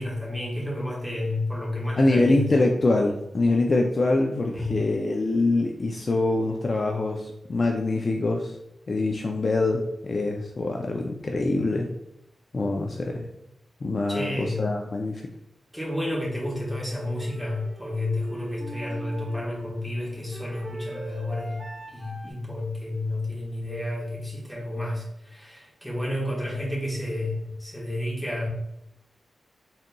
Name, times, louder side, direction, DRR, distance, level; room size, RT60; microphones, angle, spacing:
voice 1, 0.0-2.5 4.5-4.8 14.1-14.7 15.7-21.6 21.9-28.5, left 1 dB, ahead, -5 dB, 1.2 m, -31 dB
voice 2, 2.0-8.6 8.9-11.9 12.5-13.3 13.8-15.2, left 2 dB, 40° left, 2 dB, 0.3 m, -24 dB
sound 1, 16.3-22.3, right 1 dB, 30° right, 0.5 m, -41 dB
4.1 x 3.7 x 2.2 m, 0.81 s
wide cardioid pair, 140°, 0 cm